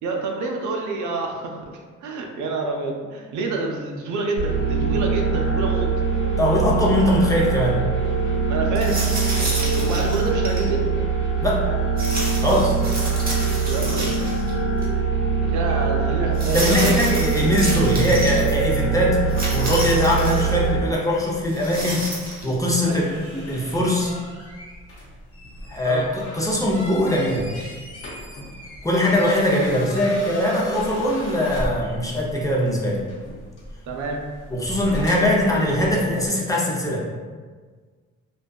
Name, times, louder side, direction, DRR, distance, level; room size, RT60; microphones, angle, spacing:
voice 1, 0.0-1.6 2.0-5.9 8.5-9.1 9.4-10.8 13.7-14.4 15.4-17.0 22.8-23.0 25.8-26.1 29.0-29.1 33.9-34.2, right 3 dB, 75° right, 1 dB, 0.5 m, -28 dB
sound 1, 4.4-20.8, right 5 dB, 80° left, 1.5 m, -23 dB
voice 2, 6.4-7.8 11.4-11.6 12.4-12.8 16.5-19.2 19.5-22.1 22.4-24.1 25.7-26.0 26.3-27.5 28.8-33.0 34.5-37.1, left 1 dB, 10° left, -4 dB, 0.5 m, -21 dB
sound 2, 8.7-10.7 12.0-14.5 14.8-14.9 16.3-18.4 19.3-20.5 21.5-22.5, right 1 dB, 30° right, 0.8 m, -30 dB
sound 3, 18.2-36.3, equal, 50° left, 0.8 m, -38 dB
2.6 x 2.2 x 2.2 m, 1.5 s
cardioid pair, 90°, 30 cm